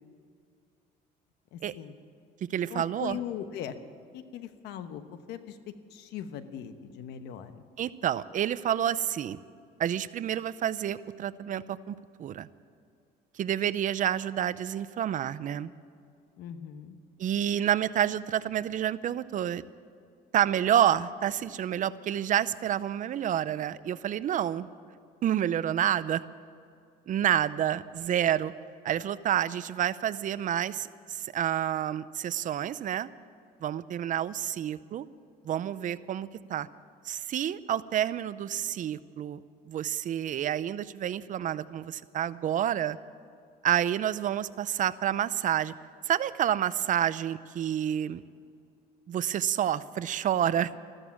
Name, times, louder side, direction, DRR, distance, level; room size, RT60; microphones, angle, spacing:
voice 1, 1.5-2.0 2.7-3.7 4.1-5.0 5.3-7.6 16.4-17.0, left 9 dB, 85° left, 10 dB, 1.1 m, -40 dB
voice 2, 2.4-3.2 7.8-9.4 9.8-12.5 13.4-15.7 17.2-19.6 20.3-24.7 25.2-26.2 27.1-28.5 28.8-33.1 33.6-35.1 35.4-36.7 37.1-39.4 39.7-43.0 43.6-45.7 46.1-48.2 49.1-50.7, right 10 dB, 50° right, 16 dB, 0.6 m, -29 dB
14.5 x 13.5 x 7.3 m, 2.4 s
cardioid pair, 110°, 17 cm